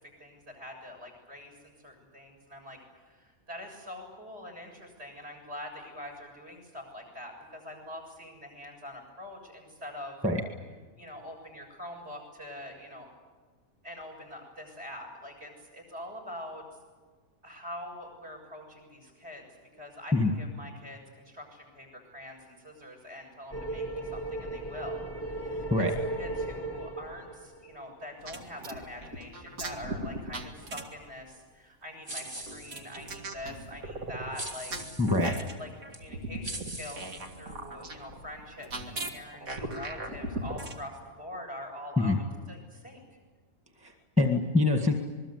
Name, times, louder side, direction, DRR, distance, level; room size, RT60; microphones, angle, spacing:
voice 1, 0.0-10.2 11.0-13.1 13.8-16.6 17.4-25.7 26.2-35.7 36.0-42.1 42.5-43.0, left 1 dB, 50° right, 3 dB, 7.5 m, -44 dB
sound 1, 23.5-27.9, right 2 dB, 20° left, 1.2 m, -36 dB
sound 2, 28.2-31.1 32.1-40.8, right 1 dB, 90° right, 2.5 m, -39 dB
sound 3, 32.1-33.2 34.3-35.3 35.9-36.0 36.4-37.8, right 1 dB, 25° right, 2.3 m, -42 dB
voice 2, 35.0-35.3 42.0-42.2 43.8-44.9, left 2 dB, 5° right, 4 dB, 1.8 m, -25 dB
27.0 x 21.5 x 8.2 m, 1.5 s
omnidirectional pair, 1.4 m